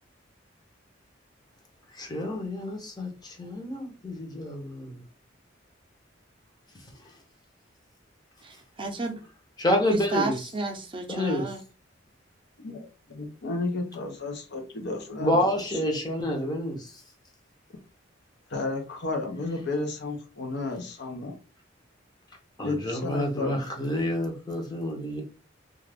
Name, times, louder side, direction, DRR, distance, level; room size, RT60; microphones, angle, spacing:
voice 1, 1.9-5.0 9.6-10.4 11.1-11.5 15.2-16.9 22.6-25.2, left 1 dB, 20° left, 0.7 m, -28 dB
voice 2, 8.4-9.2 9.9-11.6, right 3 dB, 25° right, 0.6 m, -32 dB
voice 3, 12.6-15.4 18.5-21.3 22.6-23.6, left 3 dB, 60° left, 0.6 m, -32 dB
2.4 x 2.4 x 3.3 m
head